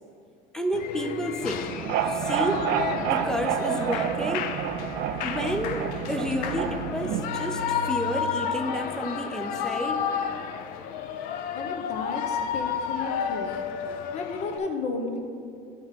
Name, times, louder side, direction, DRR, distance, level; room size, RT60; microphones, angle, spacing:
voice 1, 0.5-1.7 2.1-2.7 3.0-4.5 5.2-10.0, equal, 5° left, 6 dB, 0.4 m, -30 dB
Shout / Cheering, 0.7-14.6, left 7 dB, 65° left, 0.5 m, -32 dB
sound 1, 1.6-7.7, right 9 dB, 75° right, 0.4 m, -29 dB
Bowed string instrument, 5.3-9.7, right 2 dB, 85° left, 0.9 m, -41 dB
voice 2, 11.5-13.5 14.1-15.2, left 4 dB, 45° left, 4 dB, 0.9 m, -33 dB
9.7 x 3.5 x 5.6 m, 2.4 s
cardioid pair, 140°, 16 cm